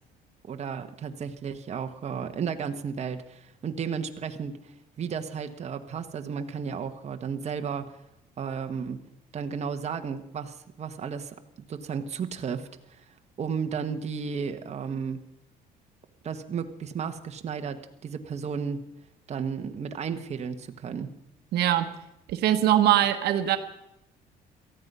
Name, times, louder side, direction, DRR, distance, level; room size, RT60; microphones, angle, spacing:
voice 1, 0.4-4.6 5.0-8.0 8.4-9.0 9.3-13.0 13.4-15.2 16.2-18.8 19.3-21.1, right 6 dB, 40° right, 6 dB, 1.3 m, -33 dB
voice 2, 21.5-21.9 22.3-23.6, right 12 dB, 75° right, 8 dB, 1.2 m, -22 dB
18.5 x 14.0 x 5.5 m, 0.81 s
cardioid pair, 110°, 17 cm